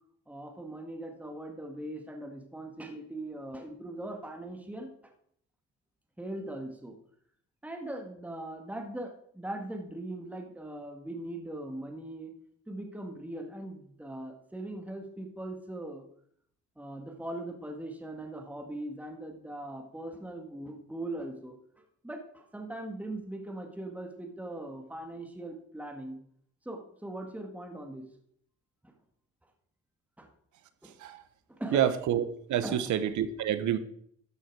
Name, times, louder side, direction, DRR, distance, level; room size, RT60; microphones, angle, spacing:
voice 1, 0.3-5.1 6.2-7.0 7.6-12.3 12.7-16.0 16.8-26.2 26.7-28.1 28.8-28.9 30.2-30.3 30.8-30.9 31.5-31.8 32.6-32.9, right 1 dB, 5° right, 3 dB, 1.8 m, -40 dB
voice 2, 31.7-32.2 32.5-33.8, right 10 dB, 75° right, 12 dB, 1.1 m, -27 dB
12.5 x 6.5 x 4.7 m, 0.65 s
cardioid pair, 90°, 30 cm